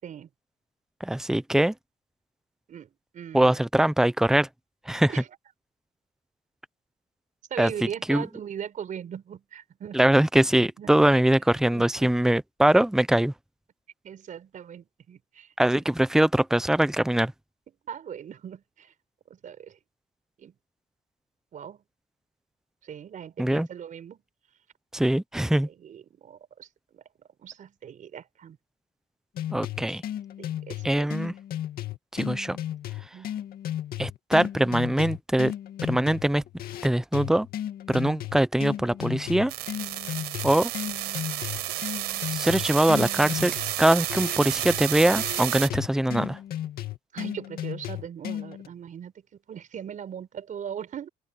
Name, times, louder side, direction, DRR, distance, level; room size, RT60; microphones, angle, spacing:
voice 1, 1.0-1.7 3.3-4.5 4.9-5.1 7.6-8.2 9.9-13.3 15.6-17.3 23.4-23.7 24.9-25.7 29.5-30.0 30.8-31.3 32.1-32.6 34.0-35.5 35.8-36.4 36.8-37.5 37.9-39.5 40.4-40.7 42.3-46.4, right 1 dB, 5° right, 0.8 m, -22 dB
voice 2, 2.7-3.6 5.1-5.3 7.5-10.0 10.6-11.2 14.0-15.5 17.9-18.9 19.3-19.8 20.4-20.6 21.5-21.8 22.8-24.2 25.6-27.0 27.4-28.6 29.8-30.0 30.4-31.1 33.1-33.5 47.1-51.1, right 8 dB, 50° right, 5.2 m, -40 dB
sound 1, 29.4-48.7, left 11 dB, 60° left, 2.3 m, -35 dB
sound 2, 39.5-45.7, right 15 dB, 80° right, 4.9 m, -31 dB
open air
cardioid pair, 110°, 17 cm